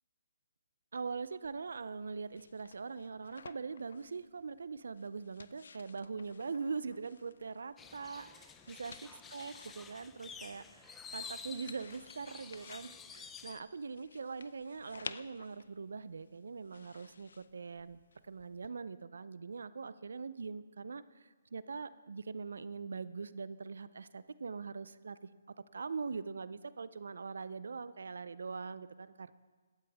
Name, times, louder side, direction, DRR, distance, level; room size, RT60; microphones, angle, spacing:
voice 1, 0.9-9.0 9.3-18.0 18.3-25.3 25.7-29.3, right 4 dB, 75° right, 16 dB, 0.5 m, -42 dB
sound 1, 1.4-18.7, left 5 dB, 75° left, 0.5 m, -55 dB
sound 2, 7.8-13.6, left 6 dB, 10° left, 0.6 m, -50 dB
16.5 x 12.0 x 3.5 m, 1.4 s
hypercardioid pair, 145°, 0 cm